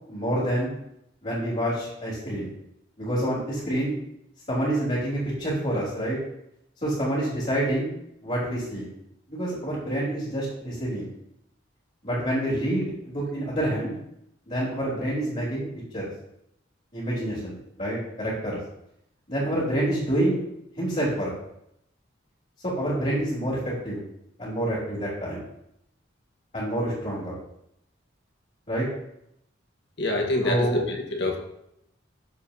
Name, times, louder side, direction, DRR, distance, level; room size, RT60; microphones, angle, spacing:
voice 1, 0.1-0.7 1.2-2.5 3.0-3.9 4.5-6.2 6.8-7.9 8.2-8.9 9.3-11.1 12.0-14.0 14.5-15.7 15.9-16.1 16.9-18.6 19.3-20.4 20.8-21.3 22.6-24.0 24.4-25.4 26.5-27.4 28.7-28.9 30.4-30.8, right 1 dB, 40° left, -11 dB, 3.3 m, -27 dB
voice 2, 30.0-31.4, left 1 dB, 60° left, 1 dB, 1.4 m, -26 dB
14.0 x 4.8 x 2.8 m, 0.79 s
head